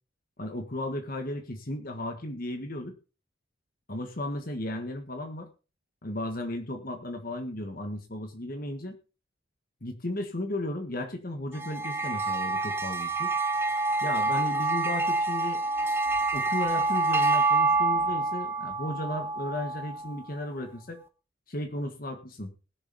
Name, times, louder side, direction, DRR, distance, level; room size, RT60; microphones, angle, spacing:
voice 1, 0.4-3.0 3.9-5.5 6.0-9.0 9.8-13.3 14.0-15.6 16.3-21.0 21.5-22.5, left 1 dB, 50° left, 5 dB, 1.6 m, -35 dB
sound 1, 11.6-20.2, right 3 dB, 10° right, 1.4 m, -27 dB
20.0 x 7.0 x 4.1 m, 0.34 s
head